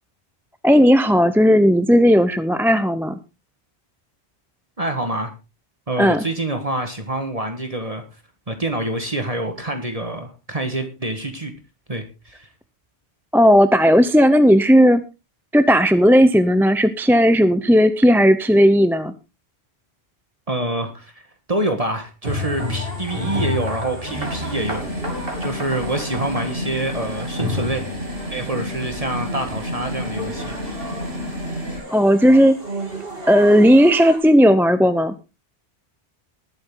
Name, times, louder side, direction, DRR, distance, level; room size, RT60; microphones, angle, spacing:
voice 1, 0.6-3.2 6.0-6.2 13.3-15.0 15.5-19.1 31.9-32.5 33.3-35.1, equal, ahead, 11 dB, 0.6 m, -14 dB
voice 2, 4.8-5.3 5.9-8.1 8.5-11.5 11.9-12.5 20.5-21.2 21.5-24.9 25.4-27.8 28.3-31.0, right 1 dB, 35° right, 6 dB, 1.7 m, -26 dB
sound 1, 22.2-34.2, left 1 dB, 60° right, 3.7 m, -31 dB
sound 2, 24.1-31.8, equal, 75° right, 8.1 m, -30 dB
19.5 x 7.8 x 3.8 m, 0.29 s
omnidirectional pair, 1.1 m